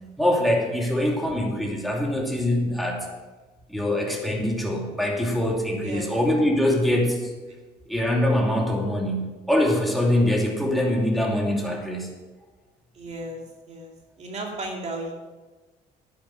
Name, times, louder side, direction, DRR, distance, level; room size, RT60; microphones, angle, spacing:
voice 1, 0.0-3.1 3.7-7.3 7.9-12.1, left 1 dB, ahead, 0 dB, 2.8 m, -23 dB
voice 2, 12.9-13.4 13.7-13.9 14.2-15.1, right 2 dB, 40° right, 0 dB, 2.5 m, -34 dB
10.5 x 9.8 x 5.9 m, 1.2 s
cardioid pair, 110°, 17 cm